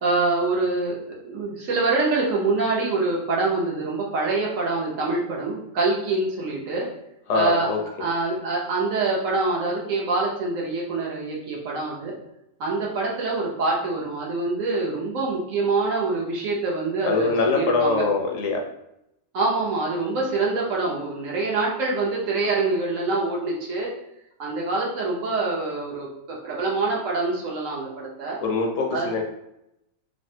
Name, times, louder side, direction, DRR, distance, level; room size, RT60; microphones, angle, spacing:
voice 1, 0.0-1.0 1.2-6.9 7.3-7.7 8.0-12.1 12.6-18.1 19.3-23.9 24.4-28.4 28.9-29.1, right 3 dB, 70° right, -3 dB, 1.2 m, -25 dB
voice 2, 7.3-7.8 17.0-18.7 28.4-29.2, left 3 dB, 70° left, 1 dB, 0.9 m, -23 dB
3.3 x 2.1 x 2.7 m, 0.83 s
omnidirectional pair, 1.5 m